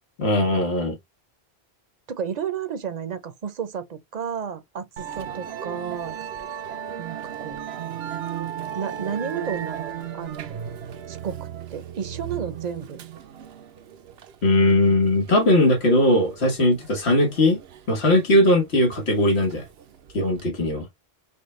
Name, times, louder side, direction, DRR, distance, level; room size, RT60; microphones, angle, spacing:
voice 1, 0.2-0.9 14.4-17.6 17.9-19.6 20.1-20.8, left 1 dB, 85° left, 1.6 m, -19 dB
voice 2, 2.1-6.2 7.0-7.6 8.8-10.6 11.1-13.0, right 7 dB, 45° right, 0.7 m, -32 dB
Musical instrument, 5.0-20.5, right 9 dB, 75° right, 0.9 m, -36 dB
5.3 x 2.3 x 3.1 m
omnidirectional pair, 1.0 m